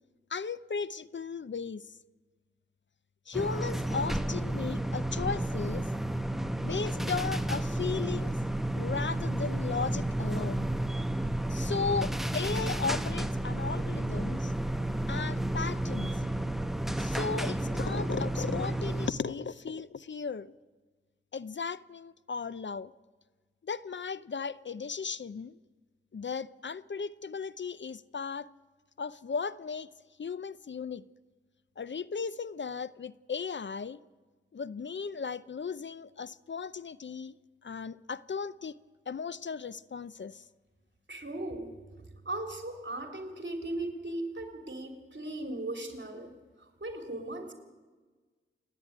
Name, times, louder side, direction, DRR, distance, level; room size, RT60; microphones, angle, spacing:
voice 1, 0.3-1.9 3.3-5.9 6.6-8.3 8.7-10.7 11.5-14.5 15.1-16.2 17.0-20.5 21.3-22.9 23.6-25.6 26.1-28.5 29.0-29.9 30.2-31.0 31.8-34.0 34.5-37.3 37.6-38.8 39.1-40.4, left 5 dB, 60° left, 0.6 m, -36 dB
sound 1, 3.3-19.1, right 1 dB, ahead, 1.1 m, -31 dB
voice 2, 41.1-41.7 42.3-46.3 46.8-47.5, right 2 dB, 60° right, 3.4 m, -37 dB
28.5 x 9.8 x 9.5 m
wide cardioid pair, 70°, 21 cm